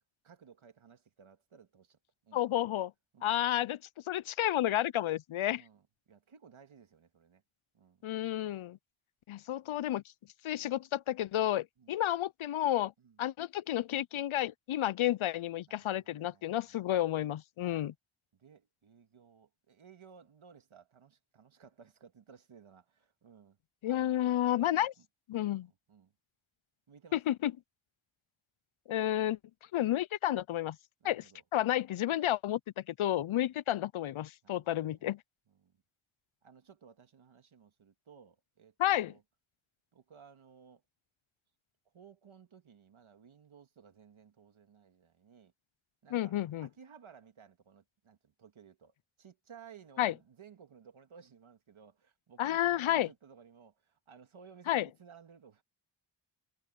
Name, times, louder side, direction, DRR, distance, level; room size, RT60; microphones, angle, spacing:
voice 1, 0.2-2.5 3.1-3.4 5.5-7.4 7.7-8.1 11.8-11.9 13.0-13.2 15.7-16.9 17.6-17.9 18.3-23.6 23.8-25.1 25.6-26.1 26.9-27.3 31.0-31.4 33.3-33.5 34.4-35.1 35.5-35.8 36.4-39.2 39.9-40.8 41.9-45.5 46.0-46.3 46.6-55.6, right 7 dB, 80° right, 2.0 m, -58 dB
voice 2, 2.3-2.9 3.2-3.8 4.1-5.6 8.0-8.8 9.3-10.0 10.4-12.9 13.2-17.9 23.8-24.9 25.3-25.7 27.1-27.5 28.9-29.4 29.7-30.8 31.0-31.2 31.5-35.2 38.8-39.2 46.1-46.7 50.0-50.1 52.4-53.1 54.7-54.9, left 13 dB, 85° left, 0.6 m, -31 dB
wide cardioid pair, 60°, 48 cm